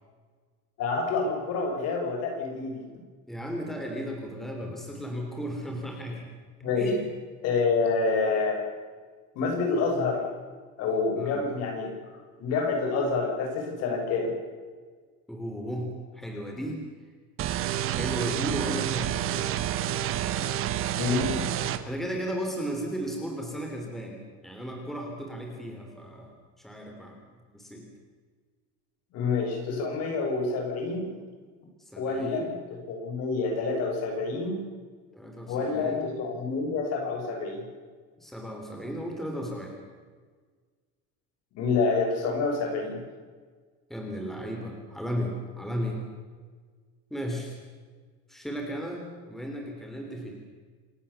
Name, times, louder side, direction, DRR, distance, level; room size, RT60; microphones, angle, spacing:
voice 1, 0.8-2.8 6.6-6.9 7.4-8.6 9.4-10.2 10.8-11.9 12.4-14.3 21.0-21.7 29.1-31.1 32.0-32.5 32.9-34.6 35.5-37.6 41.5-43.0, left 4 dB, 55° left, 2 dB, 7.0 m, -27 dB
voice 2, 3.3-6.3 6.8-7.0 11.2-11.4 15.3-16.8 17.9-19.5 19.9-20.1 20.4-20.6 21.9-26.3 26.6-27.2 27.5-27.8 31.9-32.5 35.1-36.1 38.2-39.8 43.9-46.0 47.1-47.6 48.3-50.3, equal, ahead, 1 dB, 3.3 m, -35 dB
sound 1, 17.4-21.8, right 11 dB, 45° right, 1.5 m, -29 dB
28.0 x 17.5 x 7.2 m, 1.5 s
cardioid pair, 175°, 31 cm